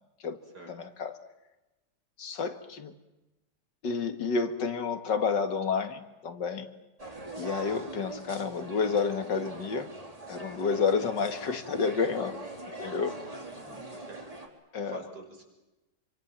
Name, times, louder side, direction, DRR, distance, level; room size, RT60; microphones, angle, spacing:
voice 1, 0.7-1.1 2.2-2.9 3.8-6.7 7.4-9.9 10.3-12.3 12.8-13.1 14.7-15.0, left 5 dB, 75° left, 8 dB, 2.4 m, -30 dB
sound 1, 7.0-14.5, right 2 dB, 20° right, 3.8 m, -42 dB
voice 2, 13.1-14.2 14.8-15.4, right 2 dB, 65° right, 2 dB, 6.3 m, -47 dB
27.5 x 24.5 x 7.5 m, 1.0 s
omnidirectional pair, 1.9 m